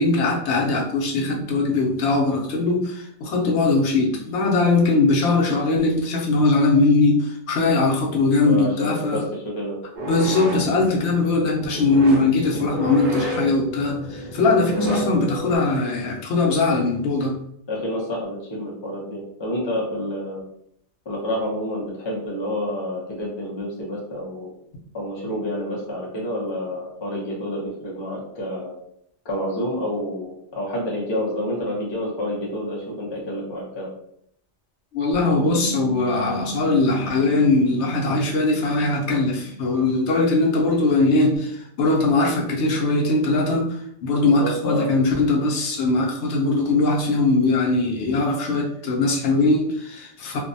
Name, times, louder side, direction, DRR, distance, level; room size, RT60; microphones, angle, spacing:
voice 1, 0.0-9.2 10.1-17.4 34.9-50.4, left 3 dB, 75° left, -1 dB, 0.9 m, -20 dB
voice 2, 8.4-9.8 17.7-20.4 21.1-24.5 24.9-28.8 29.2-33.9 44.2-44.9, equal, 35° left, -5 dB, 0.5 m, -28 dB
sound 1, 10.0-15.6, equal, 55° right, 0.7 m, -31 dB
Bass guitar, 35.1-41.4, right 2 dB, 70° right, 0.9 m, -35 dB
2.5 x 2.0 x 2.5 m, 0.72 s
omnidirectional pair, 1.2 m